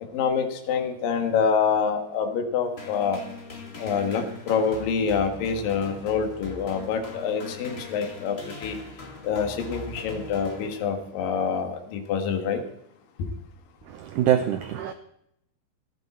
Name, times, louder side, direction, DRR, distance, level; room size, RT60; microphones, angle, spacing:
voice 1, 0.1-3.2 3.8-8.8 9.2-12.6, left 6 dB, 65° left, 3.2 m, -26 dB
sound 1, 2.8-11.3, left 3 dB, 35° left, 0.9 m, -41 dB
voice 2, 13.9-14.9, right 10 dB, 85° right, 1.7 m, -24 dB
15.0 x 14.0 x 4.3 m
omnidirectional pair, 4.5 m